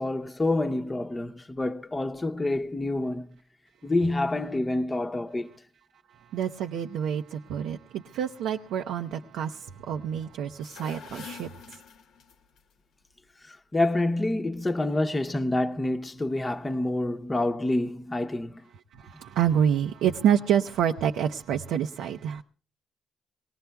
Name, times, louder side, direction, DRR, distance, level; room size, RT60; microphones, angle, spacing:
voice 1, 0.0-3.3 3.8-5.5 13.4-18.7, left 2 dB, 20° left, 0.8 m, -27 dB
voice 2, 6.3-11.5 19.0-22.4, right 9 dB, 85° right, 0.6 m, -27 dB
sound 1, 10.5-12.6, left 6 dB, 75° left, 1.0 m, -45 dB
24.5 x 19.0 x 2.3 m
cardioid pair, 90°, 0 cm